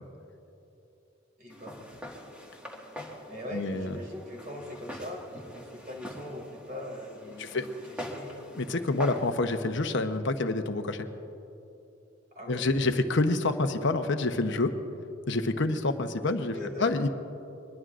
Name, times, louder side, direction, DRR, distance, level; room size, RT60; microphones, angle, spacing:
voice 1, 1.4-2.0 3.3-8.4 12.3-12.7 16.5-16.9, left 1 dB, 50° right, -1 dB, 3.5 m, -41 dB
Walk footsteps, 1.5-9.3, equal, 5° right, 1.7 m, -44 dB
voice 2, 3.5-3.9 7.4-7.7 8.6-11.1 12.5-14.7 15.3-16.5 16.8-17.1, left 2 dB, 65° left, 7 dB, 0.9 m, -27 dB
23.5 x 20.5 x 2.5 m, 2.9 s
head